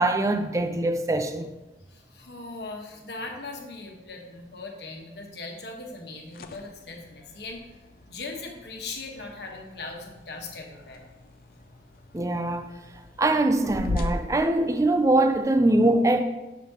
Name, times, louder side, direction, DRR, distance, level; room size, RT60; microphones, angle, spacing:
voice 1, 0.0-1.5 12.1-12.7 13.2-16.2, right 2 dB, 20° right, 0.4 m, -22 dB
voice 2, 1.9-7.6 8.1-11.1, left 3 dB, 70° left, 1.2 m, -39 dB
sound 1, 6.0-15.4, left 2 dB, 50° left, 0.4 m, -39 dB
11.5 x 5.0 x 2.9 m
head